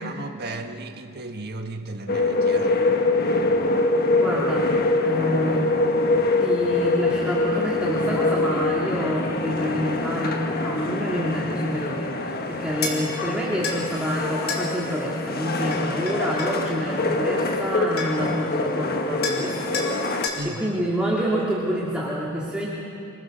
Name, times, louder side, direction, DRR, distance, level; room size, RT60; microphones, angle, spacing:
voice 1, 0.0-2.8 20.4-20.7, right 2 dB, 50° right, 1.4 m, -35 dB
sound 1, 2.1-20.3, left 2 dB, 45° left, 1.4 m, -24 dB
voice 2, 4.2-4.7 5.0-5.7 6.4-22.7, equal, 5° right, 2.4 m, -27 dB
sound 2, 12.8-13.0 13.6-13.8 14.5-14.7 15.7-16.6 17.6-17.7 18.0-18.3 19.2-19.5 19.7-19.9 20.2-20.4, left 5 dB, 85° left, 3.8 m, -29 dB
26.5 x 22.5 x 6.6 m
head